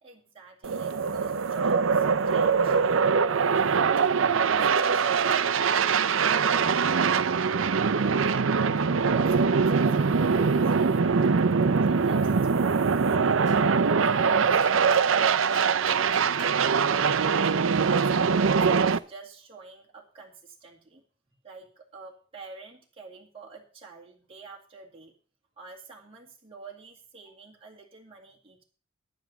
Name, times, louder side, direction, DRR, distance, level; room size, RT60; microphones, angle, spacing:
voice 1, 0.0-2.8 3.1-5.9 7.9-11.5 11.8-17.4 17.9-21.0 21.4-25.1 25.6-28.6, right 4 dB, 25° right, -3 dB, 2.2 m, -48 dB
sound 1, 0.6-19.0, right 5 dB, 75° right, 0.6 m, -23 dB
Gunshot gunfire, 13.4-13.6 14.6-14.8 15.5-16.6 17.4-17.6, left 1 dB, 35° left, 5.5 m, -44 dB
10.5 x 9.4 x 5.9 m, 0.40 s
head